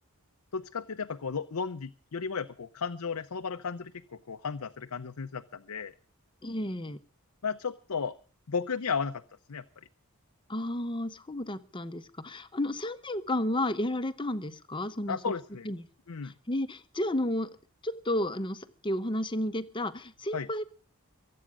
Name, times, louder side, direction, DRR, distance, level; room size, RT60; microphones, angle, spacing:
voice 1, 0.5-3.9 4.3-5.9 7.4-8.1 8.5-9.2 9.5-9.6 15.1-15.7 16.1-16.3 20.3-20.5, left 5 dB, 85° left, 8 dB, 0.7 m, -34 dB
voice 2, 6.4-7.0 10.5-15.2 15.6-15.9 16.2-17.5 17.8-20.6, left 1 dB, 20° left, 12 dB, 0.9 m, -32 dB
23.0 x 8.8 x 6.2 m, 0.40 s
head